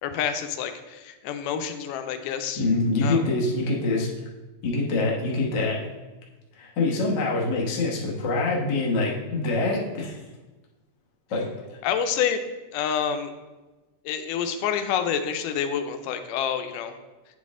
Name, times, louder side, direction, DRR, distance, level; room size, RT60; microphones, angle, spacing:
voice 1, 0.0-2.6 3.0-3.2 11.8-12.4 12.7-13.3 14.1-16.9, left 8 dB, 85° left, 8 dB, 2.1 m, -28 dB
voice 2, 2.6-4.1 4.6-5.8 6.6-10.2 11.3-11.5, left 2 dB, 70° left, -4 dB, 1.0 m, -25 dB
8.8 x 4.1 x 3.6 m, 1.2 s
omnidirectional pair, 3.7 m